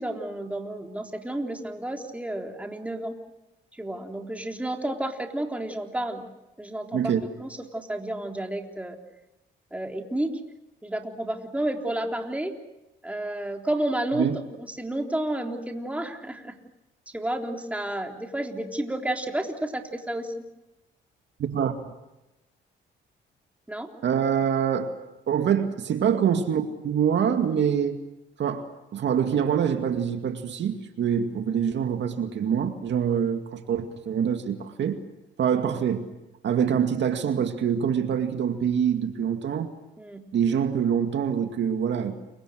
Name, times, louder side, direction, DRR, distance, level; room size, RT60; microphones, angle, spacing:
voice 1, 0.0-3.2 3.8-6.2 6.6-7.1 7.4-9.0 9.7-10.3 10.8-12.5 13.0-14.3 14.6-16.5 17.1-20.3 23.7-23.9 40.0-40.2, right 1 dB, 5° right, 2 dB, 3.6 m, -31 dB
voice 2, 21.4-21.9 24.0-24.9 25.3-28.0 28.4-35.0 35.4-36.1 36.4-39.7 40.3-42.2, right 8 dB, 65° right, 6 dB, 2.3 m, -25 dB
29.0 x 24.0 x 6.5 m, 0.95 s
cardioid pair, 90°, 20 cm